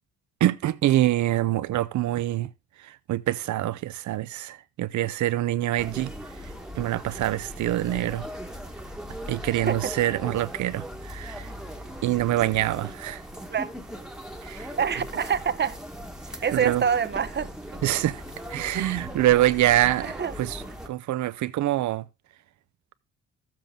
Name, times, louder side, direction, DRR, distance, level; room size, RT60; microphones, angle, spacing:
voice 1, 0.4-2.5 2.8-6.1 6.7-8.3 9.3-11.5 12.0-13.2 14.4-14.7 16.5-16.8 17.8-18.2 18.5-22.1, right 14 dB, 70° right, 0.7 m, -25 dB
sound 1, 5.8-20.9, equal, ahead, 1.3 m, -39 dB
voice 2, 14.8-15.8 16.4-17.5 18.7-18.9 20.0-20.3, right 7 dB, 35° right, 0.8 m, -26 dB
13.5 x 7.5 x 3.7 m
cardioid pair, 90°, 30 cm